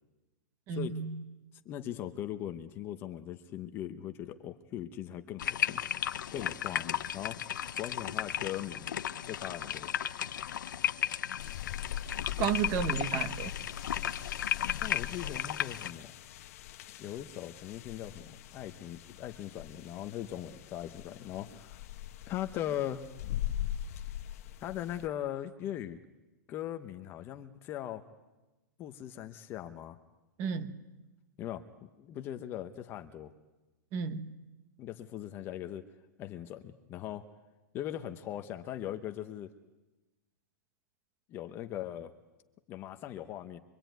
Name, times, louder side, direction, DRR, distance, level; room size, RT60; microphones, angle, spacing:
voice 1, 0.7-1.2 12.4-13.5 30.4-30.7 33.9-34.2, right 7 dB, 25° right, 10 dB, 1.5 m, -32 dB
voice 2, 1.6-5.8 6.3-7.4 7.8-8.9 9.2-9.9 12.9-13.0 14.8-16.1 17.0-21.8 22.3-23.0 24.6-26.0 26.5-28.0 28.8-30.0 31.4-31.6 32.0-33.3 34.8-35.8 36.2-37.3 37.7-39.5 41.3-42.1 42.7-43.6, left 11 dB, 20° left, 8 dB, 0.9 m, -39 dB
sound 1, 5.4-15.9, left 10 dB, 85° left, 1.0 m, -35 dB
sound 2, 11.4-25.1, left 12 dB, 50° left, 1.2 m, -41 dB
24.5 x 23.5 x 9.2 m, 1.1 s
supercardioid pair, 170°, 10 cm